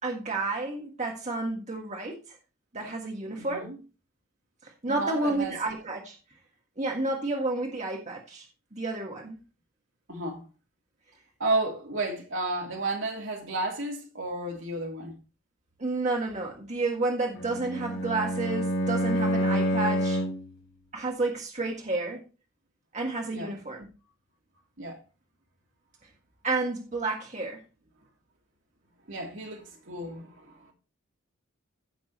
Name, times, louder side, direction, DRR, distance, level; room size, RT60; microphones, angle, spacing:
voice 1, 0.0-2.4 2.7-3.7 4.6-6.2 6.8-8.5 8.7-9.4 15.8-20.2 20.9-22.2 22.9-23.9 26.4-27.6, right 2 dB, 35° right, 1.6 m, -31 dB
voice 2, 3.4-3.8 4.9-5.5 10.1-10.4 11.4-15.1 23.3-23.5 24.8-25.0 29.1-30.7, right 2 dB, 65° right, 2.9 m, -32 dB
Bowed string instrument, 17.3-20.5, equal, 70° left, 2.8 m, -27 dB
15.5 x 6.1 x 3.1 m
head